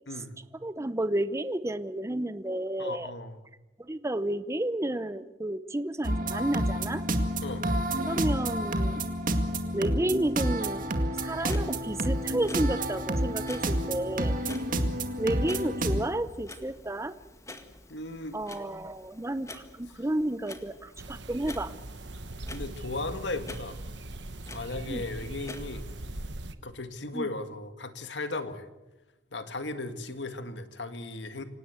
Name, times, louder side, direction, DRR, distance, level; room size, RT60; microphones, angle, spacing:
voice 1, 0.6-3.1 3.8-7.0 8.0-9.0 9.7-10.9 11.2-14.4 15.2-17.1 18.3-21.7 24.9-25.1 27.1-27.3, right 1 dB, 15° right, 13 dB, 0.7 m, -31 dB
voice 2, 2.8-3.4 7.4-7.7 14.7-14.9 17.9-18.4 22.5-23.8 24.5-25.8 26.6-28.7 29.3-31.4, left 2 dB, 70° left, 9 dB, 2.0 m, -36 dB
sound 1, 6.0-16.0, right 1 dB, 50° right, 2.1 m, -29 dB
Clock, 11.1-26.3, left 2 dB, 15° left, 1.8 m, -49 dB
sound 2, 21.0-26.5, right 1 dB, 70° right, 1.3 m, -41 dB
26.0 x 18.0 x 8.1 m, 1.0 s
head